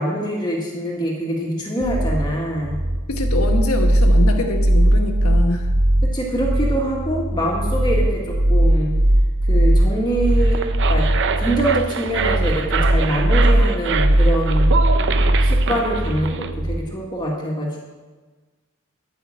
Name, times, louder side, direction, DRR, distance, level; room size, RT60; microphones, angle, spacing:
voice 1, 0.0-2.8 6.0-8.9 9.5-10.6 10.9-11.1 11.4-14.7 15.4-17.8, right 1 dB, 20° left, -2 dB, 1.7 m, -24 dB
sound 1, 1.8-16.8, right 1 dB, 75° right, 1.1 m, -18 dB
voice 2, 3.1-5.7, left 2 dB, 75° left, 4 dB, 1.5 m, -24 dB
sound 2, 10.3-16.5, right 5 dB, 55° right, 0.7 m, -26 dB
12.5 x 5.8 x 8.8 m, 1.3 s
head